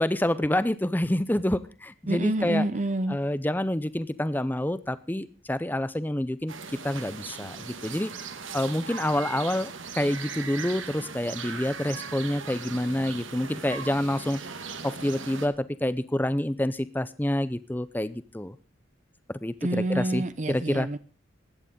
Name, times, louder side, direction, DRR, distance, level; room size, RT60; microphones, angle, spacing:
voice 1, 0.0-2.6 3.1-6.5 6.8-8.1 8.5-14.4 14.8-18.6 19.3-20.9, left 1 dB, 10° left, 15 dB, 0.6 m, -28 dB
voice 2, 2.1-3.2 19.6-21.0, right 1 dB, 40° right, 12 dB, 0.7 m, -28 dB
sound 1, 6.5-15.5, right 5 dB, 85° right, 2.1 m, -39 dB
16.0 x 11.0 x 5.2 m, 0.34 s
head